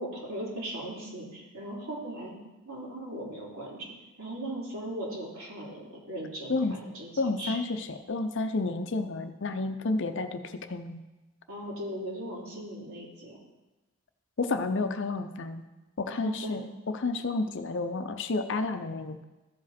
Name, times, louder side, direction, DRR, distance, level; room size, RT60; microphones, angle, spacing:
voice 1, 0.0-2.3 2.6-3.9 4.2-7.6 11.5-13.4 16.1-16.5, right 1 dB, 70° right, -5 dB, 3.1 m, -38 dB
voice 2, 7.2-11.0 14.4-15.6 16.0-19.2, left 3 dB, 55° left, 8 dB, 0.6 m, -31 dB
14.5 x 5.0 x 4.2 m, 1.1 s
head